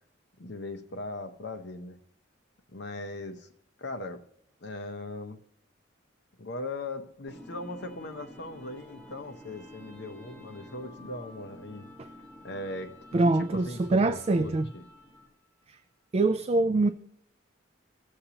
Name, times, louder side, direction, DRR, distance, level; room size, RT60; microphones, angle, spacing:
voice 1, 0.4-2.0 2.7-3.5 3.8-4.3 4.6-5.4 6.4-11.9 12.4-12.9 13.2-14.8, left 2 dB, 60° left, 0.8 m, -39 dB
sound 1, 7.3-15.5, left 1 dB, 10° left, 2.4 m, -50 dB
voice 2, 13.1-14.6 15.7-15.8 16.1-16.9, right 2 dB, 30° right, 0.3 m, -24 dB
17.0 x 6.6 x 2.9 m
head